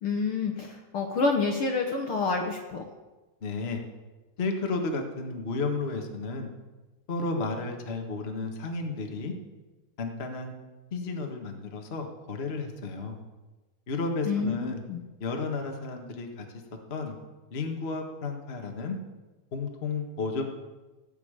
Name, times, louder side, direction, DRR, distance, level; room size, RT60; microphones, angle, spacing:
voice 1, 0.0-2.8 14.2-15.0, left 4 dB, 60° left, 3 dB, 1.5 m, -28 dB
voice 2, 3.4-3.8 4.4-6.5 7.1-9.3 10.0-10.5 10.9-13.2 13.9-14.8 15.2-16.4 16.9-17.2 17.5-19.0 19.5-20.4, left 3 dB, 45° left, 3 dB, 0.8 m, -32 dB
17.5 x 5.9 x 8.8 m, 1.2 s
omnidirectional pair, 3.7 m